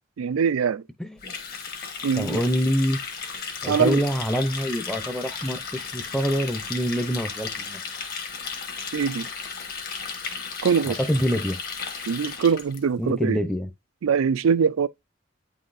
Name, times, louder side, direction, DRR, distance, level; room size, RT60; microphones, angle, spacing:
voice 1, 0.2-0.8 2.0-2.4 3.7-4.0 8.9-9.3 10.6-11.0 12.1-13.4 14.0-14.9, right 6 dB, 90° right, 0.4 m, -23 dB
voice 2, 1.0-1.3 2.2-3.0 3.6-7.8 10.8-11.6 13.0-13.7, equal, 5° left, 0.6 m, -26 dB
Water tap faucet, 1.2-12.8, left 5 dB, 45° left, 1.3 m, -34 dB
9.0 x 4.1 x 2.5 m
head